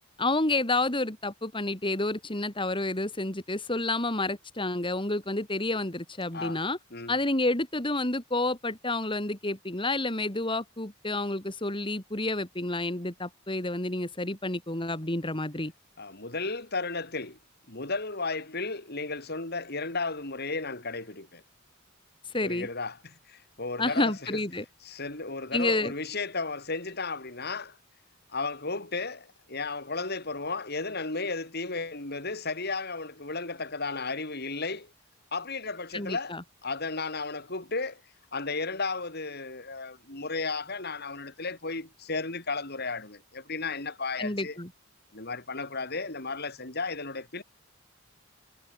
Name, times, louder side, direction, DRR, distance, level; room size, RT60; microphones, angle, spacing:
voice 1, 0.2-6.8 7.1-15.7 22.3-22.7 23.8-24.7 25.5-25.9 35.9-36.4 44.2-44.7, left 2 dB, 25° left, 3.7 m, -29 dB
voice 2, 16.0-17.4 17.7-21.4 22.4-24.4 24.8-27.8 28.3-34.9 35.3-38.0 38.3-44.6 45.1-47.4, left 3 dB, 50° left, 5.8 m, -34 dB
head